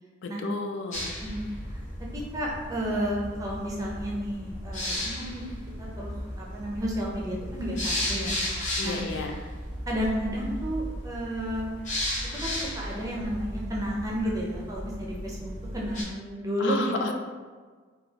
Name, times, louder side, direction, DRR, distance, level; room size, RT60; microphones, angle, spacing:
voice 1, 0.2-1.1 8.8-9.3 16.6-17.1, left 3 dB, 70° left, 4 dB, 0.3 m, -32 dB
sound 1, 0.9-16.0, left 1 dB, 40° left, 0.7 m, -35 dB
voice 2, 1.2-1.8 2.1-5.4 5.8-6.1 6.4-9.4 9.9-11.7 12.3-17.1, equal, 15° right, -3 dB, 0.5 m, -32 dB
3.9 x 2.3 x 2.8 m, 1.5 s
head